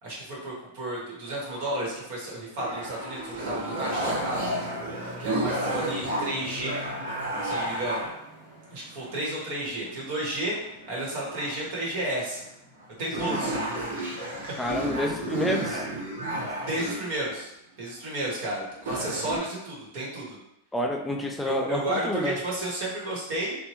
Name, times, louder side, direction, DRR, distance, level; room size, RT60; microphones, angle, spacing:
voice 1, 0.0-4.5 5.2-6.7 7.4-8.0 8.7-10.6 10.9-12.4 13.0-13.6 16.6-17.5 17.8-20.4 21.4-23.6, right 1 dB, 60° right, -4 dB, 1.1 m, -32 dB
sound 1, 1.3-2.1 2.6-8.1 8.9-9.6 9.9-10.0 10.5-11.7 12.3-12.4 12.8-12.9 13.1-17.4 18.3-18.5 18.7-19.4, right 1 dB, 85° right, 1.1 m, -32 dB
sound 2, 4.0-13.4, left 2 dB, 20° right, 1.3 m, -46 dB
voice 2, 14.6-15.9 20.7-22.4, left 1 dB, 5° left, 2 dB, 0.3 m, -29 dB
3.0 x 2.2 x 3.0 m, 0.81 s
supercardioid pair, 135°, 0 cm